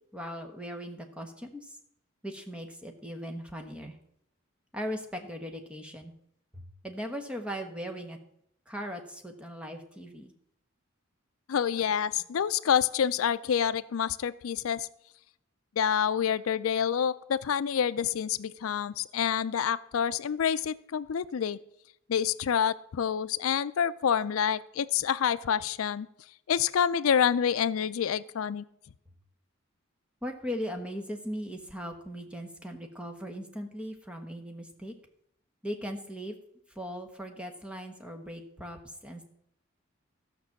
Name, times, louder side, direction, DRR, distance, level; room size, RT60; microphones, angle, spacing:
voice 1, 0.0-1.8 2.2-4.0 4.7-6.1 6.5-8.2 8.7-10.3 30.2-34.9 35.6-36.3 36.7-39.3, equal, 5° right, 4 dB, 1.2 m, -39 dB
voice 2, 11.5-14.9 15.8-21.6 22.1-26.1 26.5-28.6, left 8 dB, 85° left, 17 dB, 0.4 m, -27 dB
13.5 x 6.0 x 7.2 m, 0.75 s
head